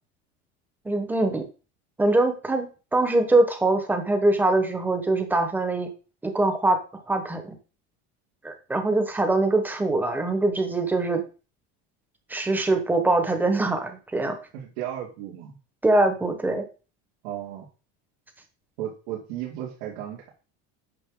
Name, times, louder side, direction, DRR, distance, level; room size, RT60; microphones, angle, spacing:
voice 1, 0.8-1.4 2.0-5.9 6.2-7.6 8.4-11.2 12.3-14.3 15.8-16.7, right 2 dB, 5° right, 5 dB, 1.1 m, -23 dB
voice 2, 14.5-15.6 17.2-17.7 18.8-20.3, right 11 dB, 85° right, -3 dB, 2.8 m, -34 dB
9.0 x 6.9 x 3.8 m, 0.34 s
cardioid pair, 180°, 30 cm